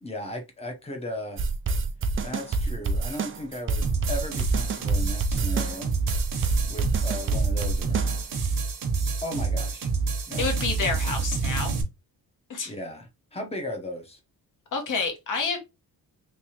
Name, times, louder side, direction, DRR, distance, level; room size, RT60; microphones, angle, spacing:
voice 1, 0.0-1.4 2.2-5.9 6.6-8.2 9.2-9.9 10.3-10.5 12.6-14.2, left 1 dB, 15° left, 0.9 m, -36 dB
sound 1, 1.4-8.5, right 3 dB, 35° right, 0.4 m, -27 dB
sound 2, 3.8-11.8, right 4 dB, 60° right, 1.0 m, -27 dB
voice 2, 10.4-11.8 12.5-12.7 14.7-15.6, left 4 dB, 55° left, 1.3 m, -28 dB
3.3 x 3.3 x 2.9 m
wide cardioid pair, 155°, 36 cm